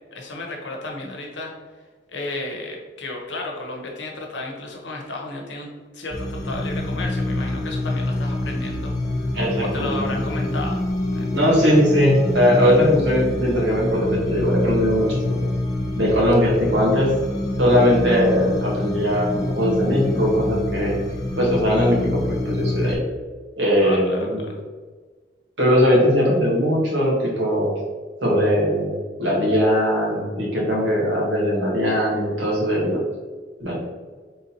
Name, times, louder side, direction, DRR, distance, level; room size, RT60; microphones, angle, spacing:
voice 1, 0.1-1.5 2.1-5.7 5.9-10.8 11.1-11.3 11.6-11.7 23.8-24.5, left 2 dB, 85° left, 0 dB, 0.9 m, -33 dB
sound 1, 6.1-23.0, left 1 dB, 20° left, 0.6 m, -26 dB
voice 2, 9.3-10.0 11.3-15.5 16.0-17.2 17.6-21.0 21.4-23.0 23.6-24.4 25.6-27.7 28.2-28.9 29.2-33.0 33.6-33.8, equal, 85° right, -4 dB, 1.4 m, -20 dB
4.1 x 3.7 x 2.8 m, 1.4 s
head